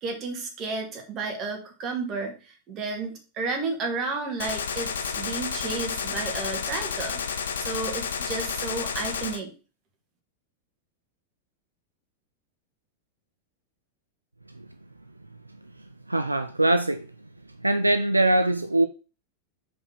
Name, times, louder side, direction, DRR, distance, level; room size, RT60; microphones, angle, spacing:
voice 1, 0.0-9.5, right 3 dB, 30° right, 2.1 m, -32 dB
Gunshot gunfire, 4.4-9.4, left 6 dB, 65° left, 0.7 m, -31 dB
voice 2, 16.1-17.1 17.6-18.9, right 1 dB, 85° right, 0.4 m, -22 dB
5.0 x 4.5 x 6.1 m
figure-of-eight pair, 90°, 0 cm